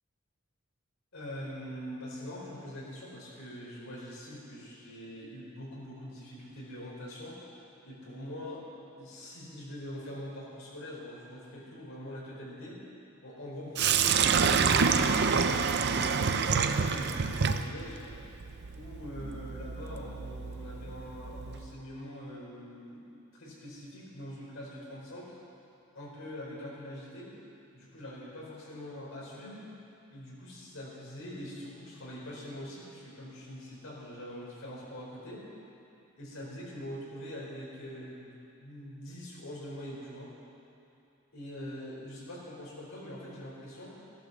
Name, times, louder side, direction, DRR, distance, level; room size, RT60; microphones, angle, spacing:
voice 1, 1.1-7.4 7.8-8.6 9.0-12.8 13.2-18.0 18.7-25.3 25.9-27.3 27.7-29.6 30.1-35.5 36.2-40.3 41.3-44.0, equal, 65° left, -4 dB, 4.4 m, -43 dB
Sink (filling or washing), 13.8-21.7, right 6 dB, 50° right, 0.6 m, -28 dB
15.0 x 12.0 x 6.8 m, 2.7 s
head